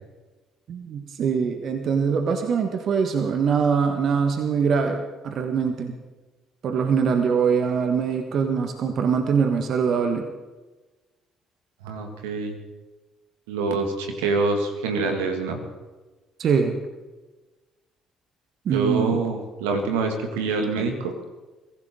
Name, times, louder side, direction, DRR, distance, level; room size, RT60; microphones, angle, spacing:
voice 1, 0.7-6.0 6.6-10.3 16.4-16.8 18.6-19.2, right 6 dB, 60° right, 6 dB, 1.5 m, -23 dB
voice 2, 11.8-12.6 13.5-15.6 18.7-21.1, right 3 dB, 80° right, 4 dB, 2.1 m, -25 dB
23.5 x 15.5 x 3.9 m, 1.2 s
hypercardioid pair, 50°, 0 cm